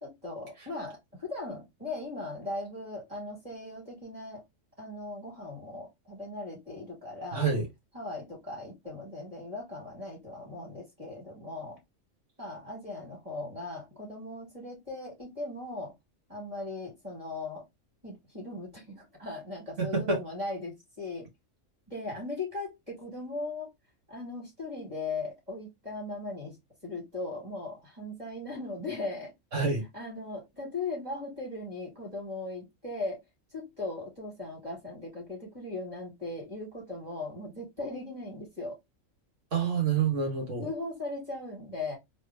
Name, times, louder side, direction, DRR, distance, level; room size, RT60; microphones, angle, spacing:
voice 1, 0.0-4.4 4.8-7.5 7.9-11.8 12.4-15.9 16.3-17.6 18.0-21.3 21.9-23.7 24.1-26.6 26.8-29.3 29.9-33.2 33.5-38.8 40.6-42.0, left 2 dB, 25° right, 2.7 m, -38 dB
voice 2, 7.3-7.7 19.8-20.2 29.5-29.8 39.5-40.7, right 5 dB, 65° right, 1.9 m, -27 dB
3.9 x 3.1 x 3.2 m
omnidirectional pair, 1.4 m